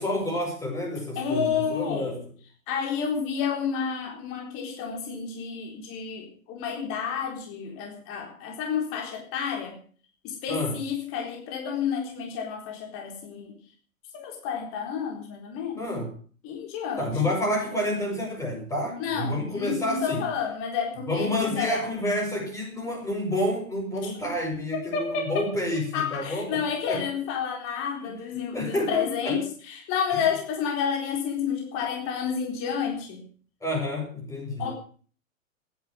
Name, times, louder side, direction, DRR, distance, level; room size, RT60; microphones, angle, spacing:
voice 1, 0.0-2.1 10.5-10.7 15.8-16.1 17.0-20.2 21.1-27.0 28.0-28.1 28.5-29.4 30.1-30.2 33.6-34.7, left 1 dB, 5° left, 0 dB, 6.8 m, -29 dB
voice 2, 1.2-2.2 2.7-9.8 10.2-13.5 14.1-15.8 16.4-17.4 19.0-21.8 24.0-24.1 24.9-25.5 25.9-33.2 34.6-34.7, left 7 dB, 30° left, 2 dB, 4.0 m, -30 dB
14.5 x 11.0 x 7.6 m, 0.43 s
figure-of-eight pair, 115°, 42 cm